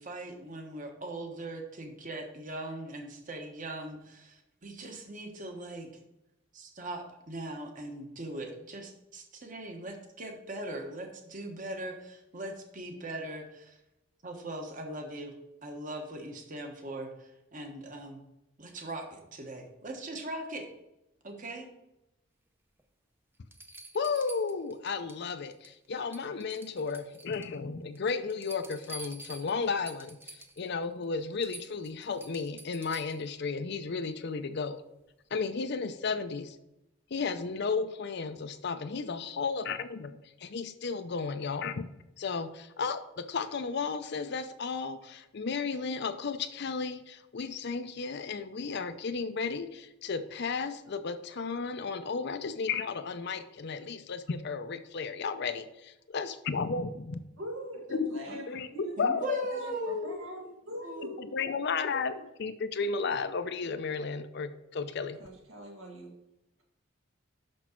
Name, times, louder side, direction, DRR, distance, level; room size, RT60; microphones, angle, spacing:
voice 1, 0.0-6.0 6.5-13.8 14.2-15.3 15.6-18.2 18.6-20.7 21.2-21.7 59.0-60.1 60.8-61.1, right 2 dB, 40° right, 3 dB, 1.2 m, -40 dB
sound 1, 22.8-22.9 23.5-25.2 25.5-25.9 26.1-27.6 28.0-30.7 31.0-31.1 31.4-33.3 35.0-35.1, right 1 dB, 10° right, 0.6 m, -48 dB
voice 2, 23.9-34.8 35.3-36.6 37.1-41.9 42.2-57.2 57.9-58.7 59.0-60.2 60.4-60.5 61.2-65.2, left 5 dB, 55° left, 10 dB, 0.5 m, -34 dB
voice 3, 57.4-59.0 59.5-61.2 65.2-66.2, right 1 dB, 85° right, 0 dB, 2.0 m, -43 dB
6.1 x 6.0 x 4.5 m, 0.90 s
head